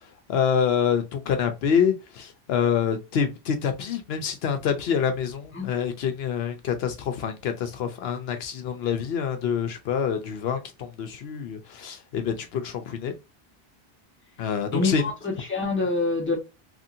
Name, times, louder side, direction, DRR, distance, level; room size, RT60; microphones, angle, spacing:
voice 1, 0.3-13.1 14.4-15.0, left 7 dB, 75° left, 0.8 m, -26 dB
voice 2, 14.7-16.4, left 3 dB, 15° left, 0.8 m, -26 dB
2.9 x 2.7 x 2.5 m
omnidirectional pair, 1.1 m